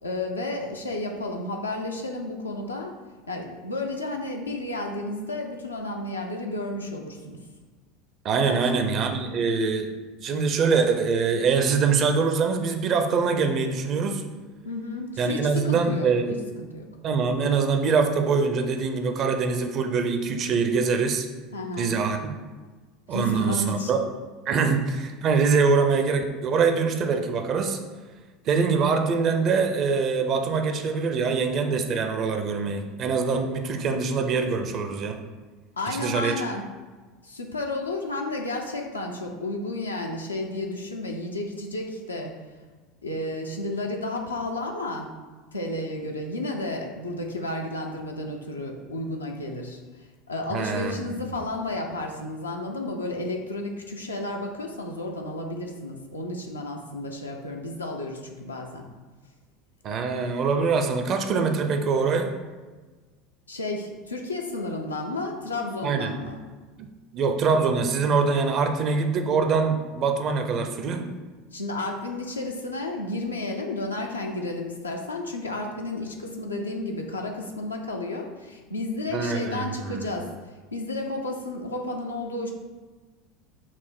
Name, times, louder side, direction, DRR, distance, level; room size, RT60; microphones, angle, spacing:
voice 1, 0.0-2.9 3.3-7.4 8.4-8.6 14.6-16.9 21.5-21.9 23.1-23.9 24.6-24.7 35.8-36.6 37.2-42.3 43.0-45.1 45.5-58.9 63.5-66.4 71.5-80.3 80.7-82.5, left 2 dB, 80° left, 1 dB, 0.5 m, -32 dB
voice 2, 8.2-9.9 10.2-14.2 15.2-16.3 17.0-21.3 21.8-22.3 23.1-24.0 24.5-27.8 28.5-35.2 35.9-36.4 50.5-51.1 59.8-62.3 65.8-66.1 67.1-71.0 79.1-80.1, right 5 dB, 40° right, 6 dB, 0.5 m, -24 dB
5.8 x 2.1 x 4.4 m, 1.3 s
figure-of-eight pair, 75°, 0 cm